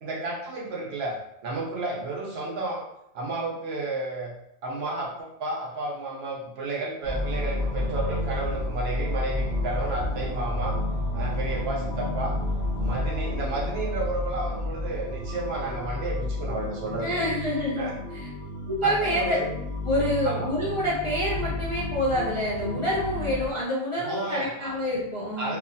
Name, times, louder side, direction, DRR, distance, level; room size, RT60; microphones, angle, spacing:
voice 1, 0.0-2.8 3.1-4.3 4.6-10.8 11.1-12.4 12.8-17.3 17.8-17.9 18.8-19.5 20.2-20.5 24.0-24.7 25.4-25.6, right 2 dB, 65° right, -2 dB, 0.9 m, -32 dB
sound 1, 7.0-23.5, left 1 dB, 25° right, 0.6 m, -31 dB
voice 2, 17.0-18.3 18.7-19.4 19.9-25.6, left 1 dB, 35° left, -8 dB, 0.5 m, -27 dB
2.9 x 2.3 x 2.6 m, 0.80 s
omnidirectional pair, 1.2 m